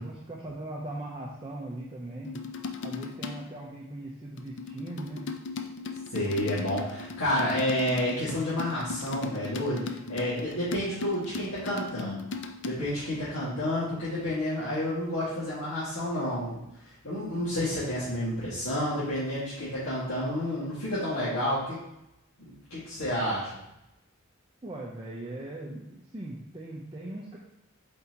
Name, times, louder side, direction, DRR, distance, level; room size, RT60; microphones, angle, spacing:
voice 1, 0.0-2.4 2.8-5.3 24.6-27.4, right 1 dB, 25° right, -3 dB, 0.7 m, -39 dB
sound 1, 2.3-3.5 4.4-12.7, left 4 dB, 55° left, 0.5 m, -38 dB
voice 2, 6.1-12.2 12.6-16.7 17.0-21.8 22.4-23.6, left 1 dB, 90° left, -11 dB, 2.0 m, -30 dB
7.6 x 4.5 x 2.9 m, 0.85 s
head